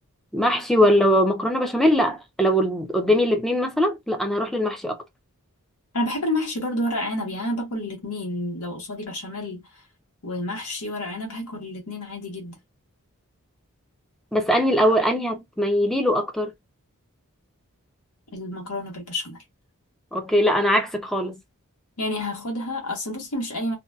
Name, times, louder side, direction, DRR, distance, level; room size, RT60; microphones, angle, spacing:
voice 1, 0.3-5.0 14.3-16.5 20.1-21.4, equal, ahead, 0.4 m, -21 dB
voice 2, 5.9-9.6 10.2-12.6 18.3-19.4 22.0-23.8, left 1 dB, 85° left, 1.1 m, -29 dB
2.7 x 2.2 x 2.3 m
head